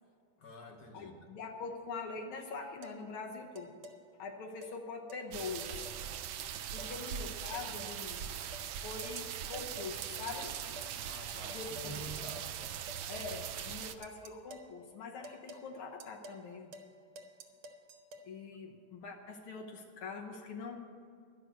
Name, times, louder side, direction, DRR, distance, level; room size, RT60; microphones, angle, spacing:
voice 1, 0.4-1.2 6.8-7.1 11.0-12.8, equal, 55° left, 2 dB, 1.5 m, -48 dB
voice 2, 0.9-3.8 4.2-5.7 6.7-8.4 8.8-10.6 11.5-12.0 13.1-16.7 18.2-20.9, left 4 dB, 85° left, 1 dB, 1.9 m, -43 dB
sound 1, 2.8-3.0 3.6-4.0 4.6-4.8 5.1-5.2 5.6-6.0 6.3-7.0 7.5-8.0 8.5-8.7 9.0-9.2 9.5-9.9 10.3-10.9 11.5-11.9 12.4-12.5 12.9-13.3 13.6-14.7 15.2-15.7 16.0-16.4 16.7-16.9 17.2-18.3, right 1 dB, 90° right, 1.9 m, -50 dB
sound 2, 5.3-13.9, right 9 dB, 70° right, 1.0 m, -41 dB
12.0 x 6.4 x 9.2 m, 2.2 s
omnidirectional pair, 2.3 m